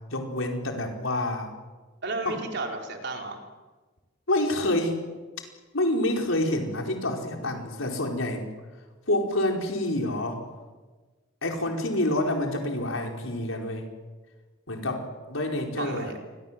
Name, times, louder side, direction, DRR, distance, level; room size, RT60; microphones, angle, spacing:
voice 1, 0.1-1.5 2.2-2.4 4.3-5.0 5.7-8.5 9.1-10.4 11.4-13.9 14.7-16.1, left 1 dB, 85° left, 2 dB, 4.8 m, -27 dB
voice 2, 2.0-3.4 15.8-16.2, right 2 dB, 60° right, 2 dB, 4.4 m, -33 dB
28.5 x 22.5 x 7.6 m, 1.3 s
head